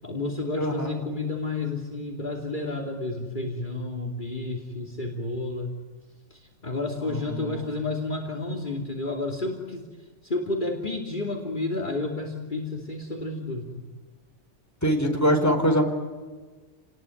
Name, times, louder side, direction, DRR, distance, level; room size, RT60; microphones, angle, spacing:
voice 1, 0.0-5.8 6.3-9.9 10.2-13.8, left 2 dB, 40° left, 3 dB, 3.1 m, -31 dB
voice 2, 0.6-1.0 7.0-7.6 14.8-15.8, equal, 15° left, 4 dB, 4.5 m, -24 dB
30.0 x 20.0 x 9.8 m, 1.4 s
omnidirectional pair, 1.2 m